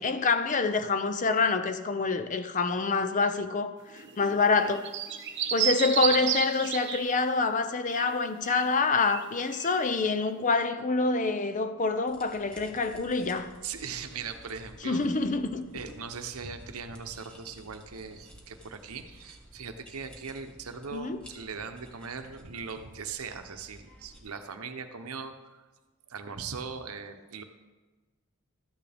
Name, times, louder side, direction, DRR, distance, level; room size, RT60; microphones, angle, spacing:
voice 1, 0.0-4.8 5.5-13.5 14.8-15.6 20.9-21.2, left 4 dB, 35° left, 0.5 m, -26 dB
sound 1, 3.9-7.1 7.4-7.5 7.9-8.1 8.4-8.6 9.0-9.2 9.5-9.7, right 9 dB, 55° right, 0.9 m, -31 dB
sound 2, 12.1-24.2, right 1 dB, 5° left, 1.3 m, -53 dB
voice 2, 13.6-15.0 15.7-25.6 26.1-27.4, right 5 dB, 85° right, 0.8 m, -40 dB
13.0 x 9.4 x 3.5 m
head